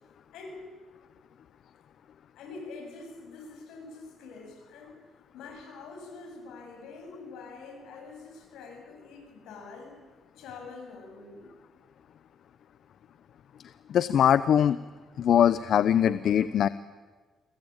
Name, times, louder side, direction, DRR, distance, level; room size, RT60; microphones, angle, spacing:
voice 1, 0.3-0.7 2.4-5.0 5.3-10.0 10.3-11.5, left 4 dB, 85° left, 4 dB, 7.2 m, -45 dB
voice 2, 13.9-14.8 15.2-16.7, left 9 dB, 65° left, 15 dB, 0.7 m, -22 dB
29.0 x 21.5 x 9.0 m, 1.4 s
cardioid pair, 90°, 0 cm